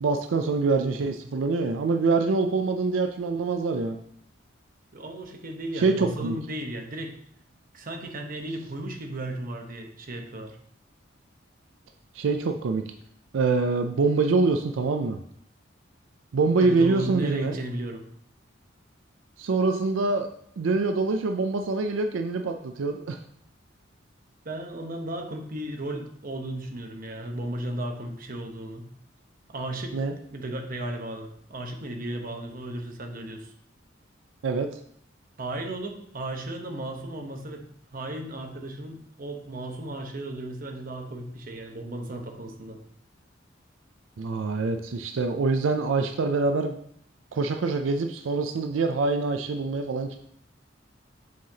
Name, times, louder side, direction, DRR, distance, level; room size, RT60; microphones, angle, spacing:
voice 1, 0.0-4.0 5.7-6.4 12.1-12.8 13.3-15.2 16.3-17.6 19.4-20.3 20.6-23.2 29.9-30.1 34.4-34.7 44.2-46.8 47.3-50.2, right 3 dB, 85° right, 6 dB, 0.4 m, -25 dB
voice 2, 4.9-7.1 7.7-10.6 16.6-18.0 24.4-28.9 29.5-30.0 30.3-33.5 35.4-37.7 37.9-42.8, right 1 dB, 50° right, 4 dB, 0.9 m, -35 dB
7.6 x 5.7 x 2.8 m, 0.66 s
head